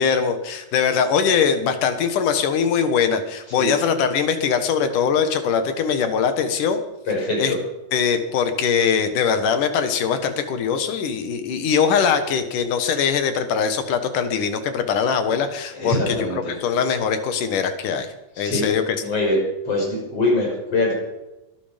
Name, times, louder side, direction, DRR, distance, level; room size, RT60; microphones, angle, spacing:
voice 1, 0.0-6.8 7.4-7.5 7.9-16.3 16.6-18.1 18.4-19.0, left 6 dB, 75° left, 9 dB, 3.0 m, -21 dB
voice 2, 7.1-7.6 15.7-16.5 18.4-18.6 19.0-19.4 19.6-20.9, left 2 dB, 45° left, -1 dB, 6.9 m, -23 dB
22.0 x 11.5 x 5.2 m, 0.98 s
omnidirectional pair, 3.8 m